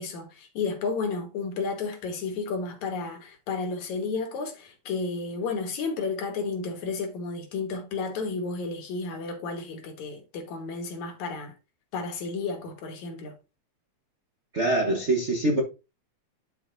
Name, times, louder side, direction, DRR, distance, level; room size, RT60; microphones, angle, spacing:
voice 1, 0.0-11.5 11.9-13.3, left 4 dB, 75° left, 2.9 m, -32 dB
voice 2, 14.5-15.6, right 1 dB, 85° right, 0.6 m, -24 dB
11.0 x 4.5 x 2.7 m
omnidirectional pair, 3.3 m